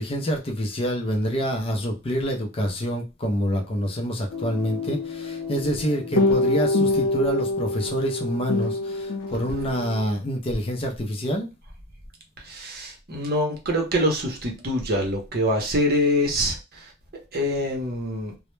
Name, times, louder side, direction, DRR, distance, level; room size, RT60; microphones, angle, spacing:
voice 1, 0.0-11.5, equal, 25° left, 0.4 m, -27 dB
sound 1, 4.3-10.0, left 2 dB, 80° left, 0.6 m, -26 dB
voice 2, 12.4-16.9 17.3-18.3, equal, 45° right, 0.7 m, -25 dB
2.1 x 2.0 x 3.0 m
head